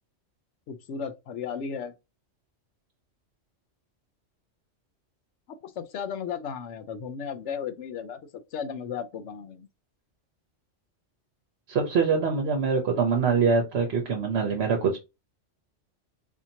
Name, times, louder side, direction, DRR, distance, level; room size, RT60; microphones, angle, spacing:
voice 1, 0.7-1.9 5.6-8.2 8.5-9.7, left 7 dB, 75° left, 1.0 m, -35 dB
voice 2, 11.7-15.0, right 5 dB, 60° right, 1.0 m, -24 dB
4.2 x 2.8 x 2.8 m
omnidirectional pair, 1.2 m